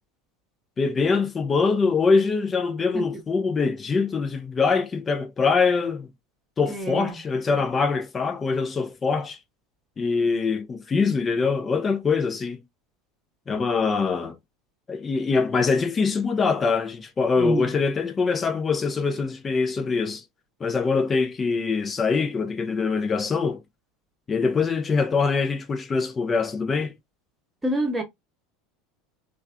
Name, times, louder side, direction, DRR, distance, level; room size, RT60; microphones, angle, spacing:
voice 1, 0.8-6.1 6.6-9.4 10.0-12.6 13.5-14.4 14.9-20.2 20.6-23.6 24.3-27.0, left 4 dB, 25° left, 0.5 m, -23 dB
voice 2, 6.7-7.1 17.4-17.7 27.6-28.0, right 2 dB, 10° right, 1.1 m, -26 dB
3.3 x 2.4 x 2.2 m
figure-of-eight pair, 75°, 0 cm